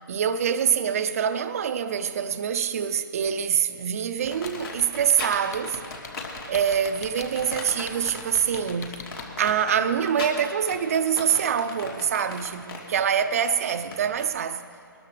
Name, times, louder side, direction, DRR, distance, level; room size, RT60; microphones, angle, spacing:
voice 1, 0.1-5.8 6.5-9.0 9.4-14.6, right 8 dB, 40° right, 0.5 m, -25 dB
sound 1, 4.2-9.2, left 6 dB, 45° left, 1.1 m, -40 dB
sound 2, 4.3-14.2, left 3 dB, 80° left, 3.4 m, -37 dB
21.5 x 13.0 x 3.3 m
hypercardioid pair, 155°, 12 cm